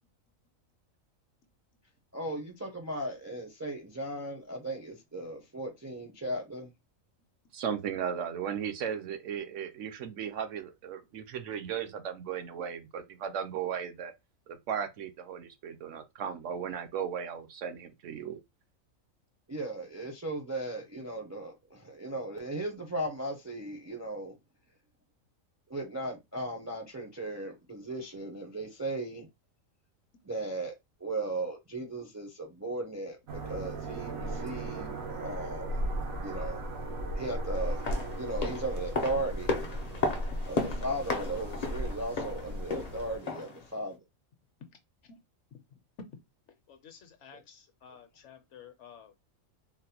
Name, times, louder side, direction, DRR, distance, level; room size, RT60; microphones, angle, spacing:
voice 1, 2.1-6.7 19.5-24.3 25.7-29.3 30.2-35.8 36.2-36.6 37.2-37.8 38.2-39.5 40.5-44.0, right 1 dB, 25° right, 0.3 m, -37 dB
voice 2, 7.5-14.1 14.5-18.4, right 8 dB, 70° right, 0.9 m, -36 dB
sound 1, 33.3-43.2, right 1 dB, 85° right, 1.2 m, -36 dB
sound 2, 37.6-43.6 43.9-44.0, left 3 dB, 50° left, 0.5 m, -35 dB
voice 3, 45.5-46.2 46.7-49.1, left 5 dB, 65° left, 0.9 m, -51 dB
3.8 x 2.1 x 2.8 m
omnidirectional pair, 1.4 m